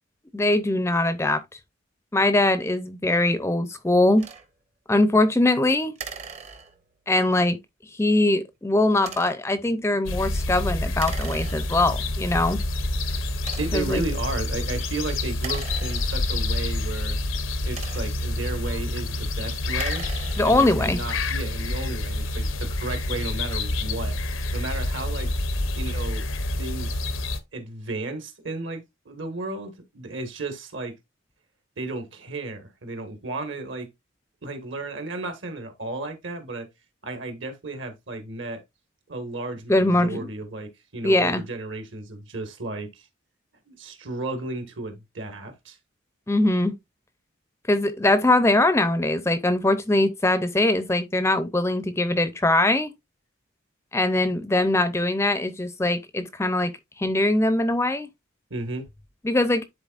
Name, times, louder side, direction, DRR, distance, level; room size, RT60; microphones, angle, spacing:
voice 1, 0.3-1.4 2.1-4.3 4.9-5.9 7.1-7.6 8.0-12.6 13.7-14.0 20.4-21.0 39.7-40.3 41.0-41.4 46.3-46.7 47.7-52.9 53.9-56.7 57.0-58.1 59.2-59.6, left 2 dB, 15° left, 0.5 m, -22 dB
sound 1, 4.2-4.5 6.0-7.0 9.0-9.5 11.0-12.0 12.6-12.7 13.4-14.0 15.3-16.5 17.4-18.3 19.6-20.7, right 6 dB, 35° right, 0.8 m, -40 dB
sound 2, 10.1-27.4, left 2 dB, 80° left, 0.8 m, -28 dB
voice 2, 13.6-17.2 17.6-20.1 20.4-24.2 24.5-25.3 25.7-26.2 26.6-26.9 27.5-30.9 31.8-33.9 34.4-36.7 37.0-38.6 39.1-43.1 43.7-45.8 58.5-58.8, right 2 dB, 70° right, 1.6 m, -33 dB
10.5 x 3.9 x 2.4 m
head